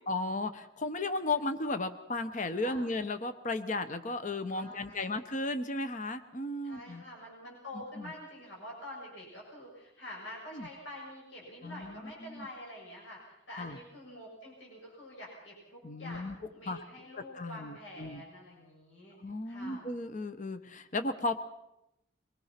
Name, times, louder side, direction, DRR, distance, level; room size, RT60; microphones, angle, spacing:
voice 1, 0.1-7.0 7.7-8.1 10.5-10.7 11.6-12.5 13.6-13.8 15.8-16.3 16.7-16.8 17.3-18.2 19.2-21.4, left 2 dB, 40° left, 10 dB, 1.0 m, -35 dB
voice 2, 4.5-5.2 6.6-19.2 19.5-19.9, left 1 dB, 80° left, -3 dB, 7.0 m, -47 dB
24.0 x 20.5 x 5.9 m, 0.87 s
head